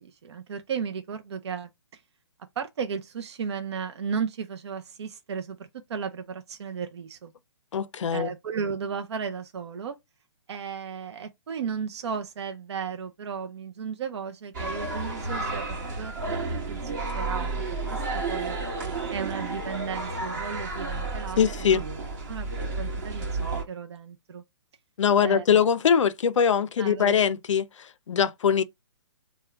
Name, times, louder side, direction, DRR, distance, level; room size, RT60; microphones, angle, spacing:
voice 1, 0.0-2.0 2.6-5.6 5.9-7.3 8.1-10.0 10.5-21.4 21.7-21.8 22.3-22.5 22.8-24.4 25.2-25.6 26.8-27.2, right 6 dB, 65° right, 0.6 m, -35 dB
voice 2, 7.7-8.3 21.4-21.8 25.0-28.6, left 7 dB, 85° left, 0.4 m, -22 dB
sound 1, 14.5-23.6, right 3 dB, 40° right, 1.7 m, -31 dB
3.5 x 2.2 x 3.3 m
hypercardioid pair, 160°, 15 cm